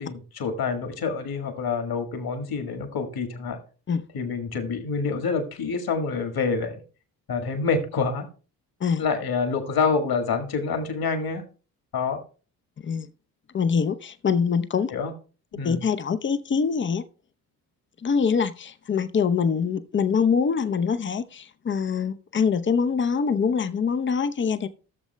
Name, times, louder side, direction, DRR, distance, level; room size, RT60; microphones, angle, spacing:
voice 1, 0.0-3.6 4.1-6.8 7.3-8.3 9.0-11.4 11.9-12.2 14.9-15.1 15.5-15.8, left 5 dB, 45° left, 1.8 m, -27 dB
voice 2, 13.5-14.9 15.6-17.0 18.0-24.7, left 6 dB, 25° left, 0.7 m, -24 dB
15.0 x 7.1 x 2.2 m
figure-of-eight pair, 45°, 50 cm